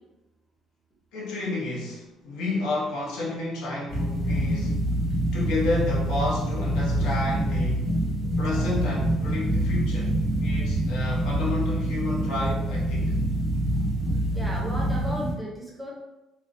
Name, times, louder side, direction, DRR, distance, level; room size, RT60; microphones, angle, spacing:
voice 1, 1.1-4.8 5.3-7.9 8.4-13.1, left 2 dB, 80° left, -4 dB, 0.7 m, -31 dB
sound 1, 3.9-15.3, right 1 dB, 25° left, 0.9 m, -26 dB
voice 2, 14.3-15.9, equal, ahead, -4 dB, 0.6 m, -34 dB
2.5 x 2.0 x 2.4 m, 0.99 s
cardioid pair, 140°, 0 cm